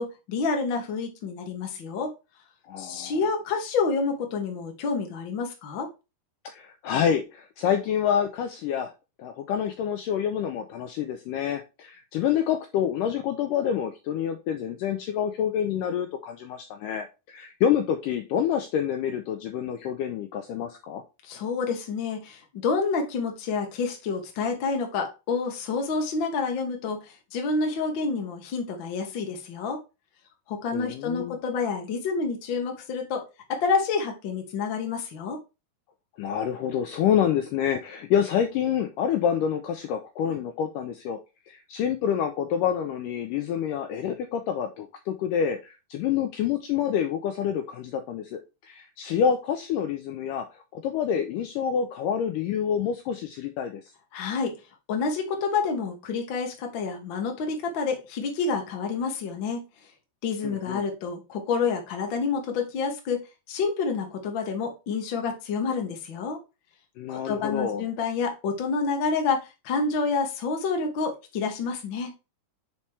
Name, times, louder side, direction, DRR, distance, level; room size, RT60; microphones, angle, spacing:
voice 1, 0.0-2.1 2.8-5.9 21.2-29.8 30.5-33.2 33.5-35.4 54.1-54.5 54.9-59.6 60.2-63.2 63.5-66.4 67.1-72.1, left 4 dB, 70° left, 3 dB, 1.1 m, -28 dB
voice 2, 2.7-3.2 6.5-8.9 9.2-21.0 30.7-31.4 36.2-41.2 41.5-50.5 50.7-53.8 60.4-60.9 67.0-67.8, left 8 dB, 85° left, 6 dB, 1.9 m, -27 dB
5.8 x 4.4 x 4.7 m, 0.28 s
omnidirectional pair, 4.5 m